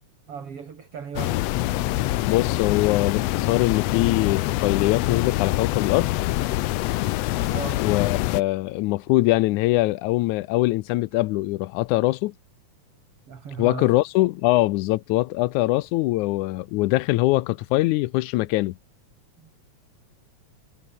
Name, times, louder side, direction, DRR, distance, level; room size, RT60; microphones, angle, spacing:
voice 1, 0.3-1.4 7.5-7.8 13.3-13.9 19.4-19.5, right 6 dB, 50° right, 3.6 m, -36 dB
sound 1, 1.2-8.4, left 17 dB, 75° left, 1.6 m, -25 dB
voice 2, 2.2-6.1 7.8-12.3 13.6-18.7, left 19 dB, 90° left, 2.1 m, -22 dB
omnidirectional pair, 3.4 m